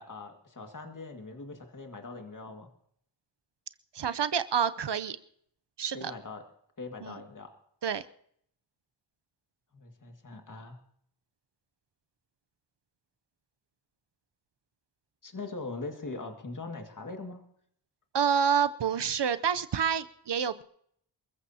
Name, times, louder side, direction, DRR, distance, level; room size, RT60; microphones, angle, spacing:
voice 1, 0.0-2.7 5.9-6.4 6.8-7.5 9.7-10.8 15.2-17.4, left 3 dB, 45° left, 4 dB, 2.1 m, -41 dB
voice 2, 3.9-5.2 5.8-6.1 7.0-7.1 7.8-8.0 18.1-20.6, right 7 dB, 70° right, 12 dB, 0.8 m, -28 dB
28.5 x 14.5 x 2.9 m, 0.67 s
wide cardioid pair, 75°, 44 cm